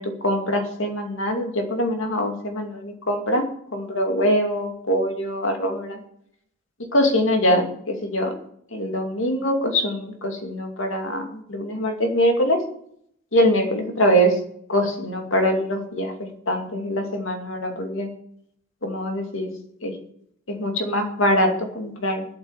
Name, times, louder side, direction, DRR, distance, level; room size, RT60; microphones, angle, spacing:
voice 1, 0.0-3.4 3.7-6.0 6.9-8.3 8.7-12.6 13.3-14.4 14.7-16.1 16.5-18.1 18.8-19.5 19.8-20.0 20.5-22.3, equal, 70° left, 3 dB, 2.4 m, -23 dB
11.5 x 8.3 x 7.3 m, 0.69 s
head